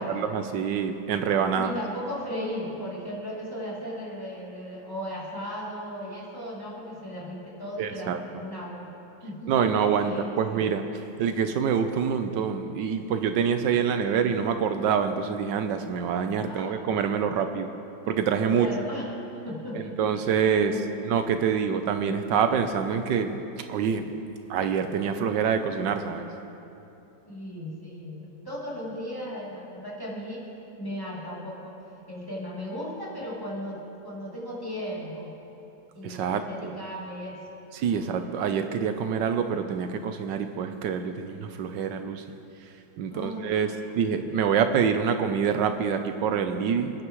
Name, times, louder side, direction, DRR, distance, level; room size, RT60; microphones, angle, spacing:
voice 1, 0.0-1.7 7.8-8.2 9.5-10.8 11.2-17.7 18.1-18.7 20.0-20.7 21.1-23.4 23.7-24.0 24.5-26.3 36.0-36.7 37.7-42.2 43.0-43.7 44.0-46.9, right 7 dB, 75° right, 8 dB, 1.3 m, -26 dB
voice 2, 1.5-8.9 9.2-10.8 16.5-16.8 18.5-19.1 19.4-21.1 27.3-30.4 30.8-31.8 32.1-35.3 35.9-37.4 37.9-38.2 43.1-43.9, equal, 10° left, -7 dB, 3.0 m, -36 dB
28.5 x 9.7 x 3.1 m, 2.9 s
omnidirectional pair, 2.0 m